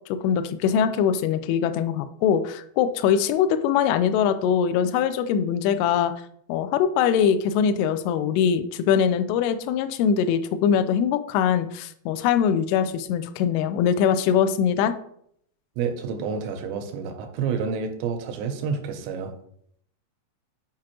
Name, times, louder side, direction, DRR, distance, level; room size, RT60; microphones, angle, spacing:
voice 1, 0.1-6.1 6.5-14.9, left 8 dB, 85° left, 11 dB, 2.3 m, -22 dB
voice 2, 15.8-19.3, right 6 dB, 85° right, 6 dB, 2.8 m, -29 dB
7.6 x 4.8 x 2.9 m, 0.68 s
omnidirectional pair, 5.1 m